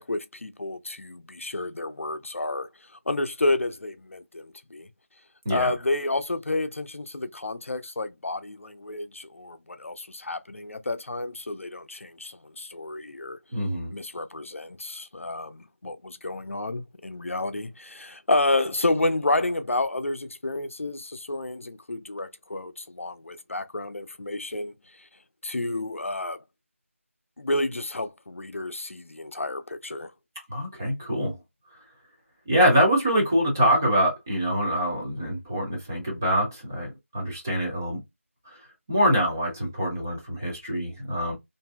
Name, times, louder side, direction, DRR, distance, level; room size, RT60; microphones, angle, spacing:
voice 1, 0.0-2.7 3.1-4.9 5.5-13.4 13.9-25.1 25.4-26.4 27.4-30.1, left 2 dB, 65° left, 0.5 m, -30 dB
voice 2, 13.5-13.9 30.5-31.4 32.5-38.0 38.9-41.3, equal, 15° right, 0.5 m, -24 dB
2.9 x 2.6 x 2.2 m
figure-of-eight pair, 170°, 8 cm